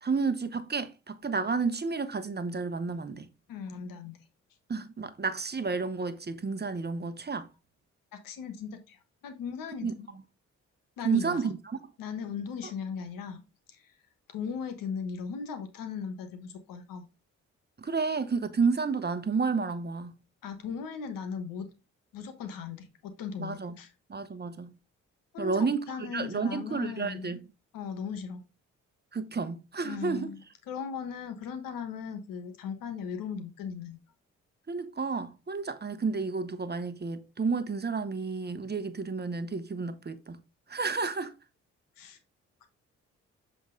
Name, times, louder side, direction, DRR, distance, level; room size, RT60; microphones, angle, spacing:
voice 1, 0.0-3.3 4.7-7.5 9.8-10.2 11.0-11.8 17.8-20.2 23.4-23.8 24.1-24.7 25.4-27.5 29.1-30.3 34.7-40.4 40.7-41.3, right 4 dB, 30° right, 1.0 m, -31 dB
voice 2, 3.5-4.2 8.1-10.1 11.0-11.5 12.0-13.4 13.7-13.9 14.3-17.1 20.4-21.7 22.1-23.9 25.3-27.4 27.7-28.4 29.8-30.4 30.7-34.0 42.0-42.2 42.6-42.7, left 6 dB, 80° left, 1.1 m, -38 dB
7.3 x 3.8 x 3.7 m
hypercardioid pair, 45°, 33 cm